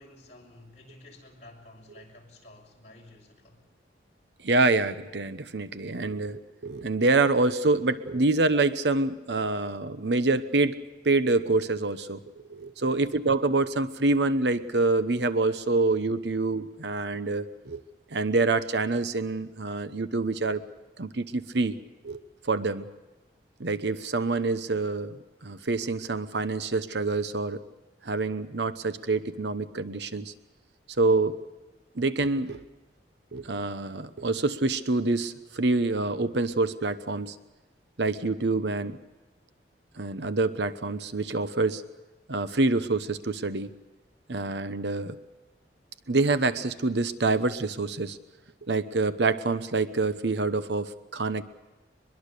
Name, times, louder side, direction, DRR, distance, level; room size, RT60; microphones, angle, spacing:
voice 1, 0.0-3.7 12.8-13.2, left 2 dB, 40° left, 0 dB, 5.4 m, -52 dB
voice 2, 4.4-10.8 11.0-12.2 12.5-17.8 18.1-20.6 21.0-21.7 22.0-22.2 22.4-22.8 23.6-25.2 25.4-27.6 28.0-30.3 31.0-31.4 32.0-32.6 33.3-37.4 38.0-39.0 40.0-41.8 42.3-43.7 44.3-45.2 46.1-48.2 48.6-51.4, right 3 dB, 75° right, 12 dB, 1.0 m, -26 dB
23.5 x 22.0 x 6.8 m, 1.1 s
head